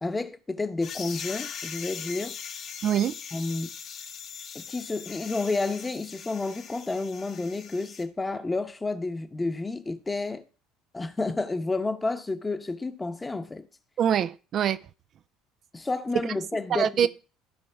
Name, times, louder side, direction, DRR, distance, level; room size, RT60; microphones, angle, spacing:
voice 1, 0.0-2.4 3.3-3.7 4.5-10.4 10.9-13.7 15.7-17.1, left 3 dB, 20° left, 0.9 m, -30 dB
sound 1, 0.8-8.0, left 7 dB, 50° left, 1.3 m, -40 dB
voice 2, 2.8-3.1 14.0-14.8 16.7-17.1, right 9 dB, 50° right, 0.4 m, -24 dB
15.0 x 5.1 x 3.5 m
hypercardioid pair, 65°, 0 cm